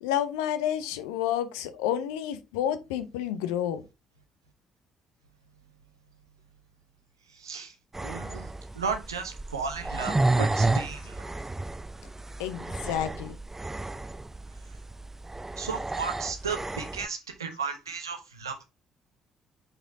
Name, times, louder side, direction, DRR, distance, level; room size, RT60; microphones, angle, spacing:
voice 1, 0.0-3.8 12.4-13.4, left 10 dB, 75° left, 0.7 m, -30 dB
voice 2, 7.3-7.7 8.0-11.3 15.6-18.6, right 5 dB, 90° right, 0.8 m, -34 dB
sound 1, 7.9-17.1, right 2 dB, 15° right, 0.5 m, -31 dB
7.5 x 5.0 x 2.7 m
figure-of-eight pair, 45°, 2 cm